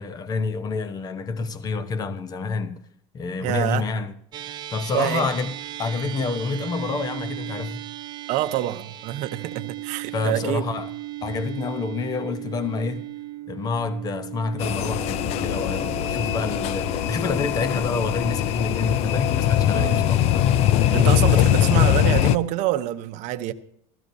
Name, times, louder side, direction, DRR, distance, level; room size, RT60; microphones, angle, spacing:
voice 1, 0.0-2.8 3.1-4.1 4.7-7.9 10.1-10.9 11.2-13.1 13.5-20.3, left 4 dB, 25° left, 0.8 m, -28 dB
voice 2, 3.4-3.8 4.9-5.3 8.3-10.6 19.7-20.1 20.9-23.5, right 14 dB, 55° right, 0.8 m, -26 dB
sound 1, 4.3-22.9, right 15 dB, 30° right, 0.5 m, -38 dB
sound 2, 14.6-22.4, left 11 dB, 45° left, 0.4 m, -21 dB
15.5 x 14.0 x 2.7 m
cardioid pair, 150°, 15 cm